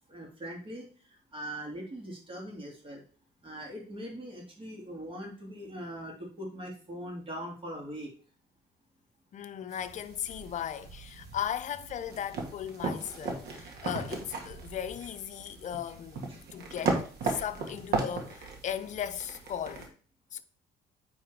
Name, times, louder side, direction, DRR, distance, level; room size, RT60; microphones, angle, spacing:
voice 1, 0.1-3.0 3.4-8.1 16.3-16.5, equal, 30° right, 2.9 m, -41 dB
voice 2, 9.3-19.9 20.3-20.4, left 9 dB, 45° left, 0.7 m, -37 dB
sound 1, 9.7-19.9, right 3 dB, 75° right, 1.9 m, -36 dB
9.0 x 3.7 x 4.7 m
cardioid pair, 110°, 17 cm